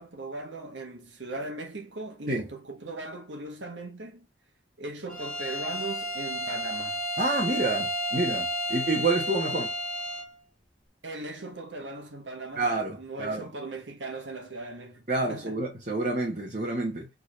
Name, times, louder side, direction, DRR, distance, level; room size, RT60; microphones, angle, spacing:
voice 1, 0.0-4.3 4.8-7.0 11.0-12.7 13.0-15.6, right 2 dB, 75° right, 1.4 m, -38 dB
Bowed string instrument, 5.1-10.3, equal, 5° left, 1.4 m, -32 dB
voice 2, 7.2-9.7 12.6-13.5 15.1-17.1, right 2 dB, 45° right, 1.3 m, -28 dB
4.8 x 3.8 x 2.6 m
head